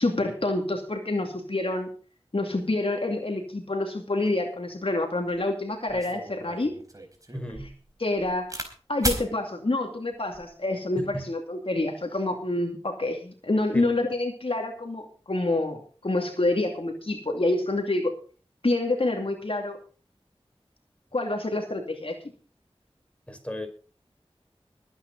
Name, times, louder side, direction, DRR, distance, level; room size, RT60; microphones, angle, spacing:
voice 1, 0.0-1.9 2.3-6.7 7.6-7.7 8.0-8.6 8.9-18.1 18.6-19.8 21.1-22.2, left 2 dB, 60° left, 2.5 m, -27 dB
sound 1, 5.3-5.4 5.9-8.7 9.0-9.3 10.1-10.5, right 1 dB, 35° right, 4.5 m, -34 dB
voice 2, 7.3-7.7 11.0-11.2 13.7-13.9 23.3-23.7, equal, 10° left, 5.2 m, -35 dB
22.0 x 9.3 x 4.0 m
wide cardioid pair, 45°, 10 cm